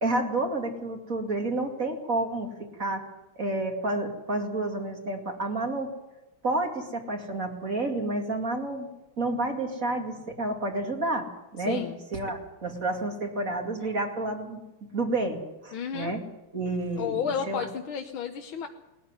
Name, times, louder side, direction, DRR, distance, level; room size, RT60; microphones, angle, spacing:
voice 1, 0.0-3.0 3.4-5.9 6.4-8.9 9.2-11.3 11.5-14.6 14.9-16.2 16.5-17.2 17.5-17.6, right 2 dB, 35° right, 3 dB, 2.8 m, -30 dB
voice 2, 11.7-12.0 15.7-16.2 17.0-18.7, left 7 dB, 70° left, 4 dB, 1.9 m, -32 dB
20.5 x 14.5 x 9.7 m, 1.0 s
omnidirectional pair, 2.4 m